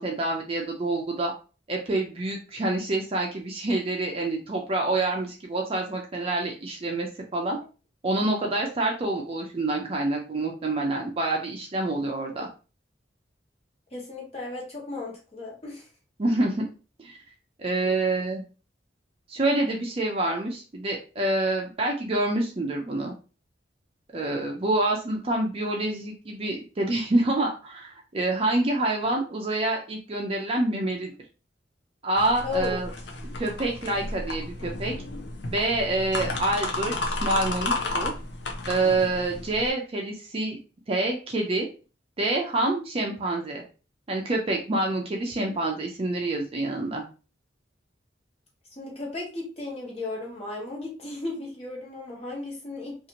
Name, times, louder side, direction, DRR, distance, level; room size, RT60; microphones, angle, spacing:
voice 1, 0.0-1.3 1.7-7.6 8.0-12.5 16.2-16.6 17.0-17.2 17.6-18.4 19.3-23.1 24.1-31.1 32.0-32.9 33.4-34.9 35.5-38.1 38.7-40.6 40.9-41.7 42.2-43.6 44.1-47.0, right 2 dB, 35° right, 0 dB, 0.4 m, -27 dB
voice 2, 13.9-15.9 17.8-18.0 32.4-32.8 48.8-53.0, left 3 dB, 35° left, -2 dB, 1.1 m, -35 dB
sound 1, 32.2-39.7, left 2 dB, 70° left, 0.6 m, -32 dB
2.7 x 2.4 x 2.8 m, 0.34 s
head